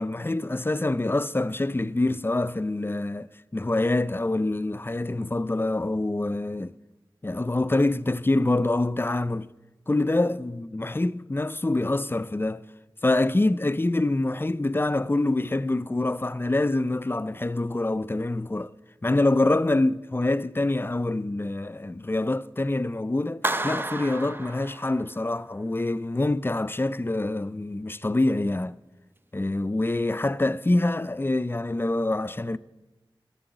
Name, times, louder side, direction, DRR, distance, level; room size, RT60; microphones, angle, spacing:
voice 1, 0.0-6.8 7.2-9.5 9.9-12.6 13.0-18.7 19.0-28.8 29.3-32.6, left 2 dB, 25° left, 0.4 m, -25 dB
Clapping, 23.4-25.3, right 1 dB, 25° right, 0.6 m, -31 dB
11.5 x 7.0 x 7.9 m
wide cardioid pair, 40°, 9 cm